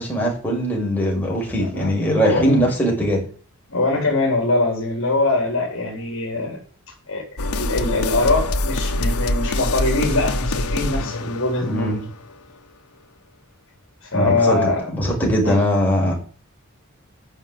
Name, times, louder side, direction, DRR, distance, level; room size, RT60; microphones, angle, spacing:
voice 1, 0.0-3.2 11.6-12.0 14.1-16.2, equal, 10° left, -3 dB, 5.9 m, -21 dB
voice 2, 1.6-1.9 2.2-2.4 3.7-6.6 7.1-7.2 7.5-11.9 14.0-14.8 15.4-15.6, left 2 dB, 65° left, -2 dB, 4.2 m, -22 dB
sound 1, 7.4-12.4, left 2 dB, 90° left, 1.2 m, -24 dB
11.5 x 6.8 x 9.3 m, 0.41 s
head